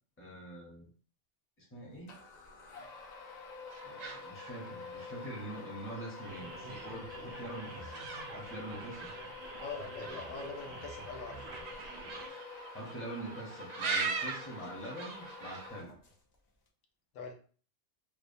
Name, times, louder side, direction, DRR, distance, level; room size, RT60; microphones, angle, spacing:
voice 1, 0.2-0.9 1.6-2.2 3.8-9.1 12.7-16.0, right 1 dB, 15° left, 0.6 m, -45 dB
sound 1, 2.1-16.3, left 4 dB, 55° left, 0.4 m, -48 dB
sound 2, 3.7-15.7, right 4 dB, 85° right, 0.3 m, -42 dB
sound 3, 6.2-12.3, right 4 dB, 65° right, 0.7 m, -49 dB
voice 2, 9.6-11.5 17.1-17.3, left 4 dB, 90° left, 1.0 m, -43 dB
2.8 x 2.0 x 2.5 m
omnidirectional pair, 1.3 m